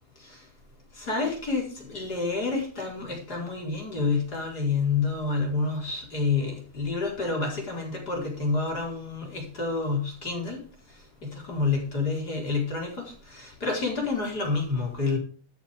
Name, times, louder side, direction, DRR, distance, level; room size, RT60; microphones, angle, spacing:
voice 1, 0.9-10.6 11.2-15.2, left 4 dB, 25° left, 0 dB, 4.8 m, -28 dB
12.5 x 8.4 x 5.1 m, 0.40 s
omnidirectional pair, 3.8 m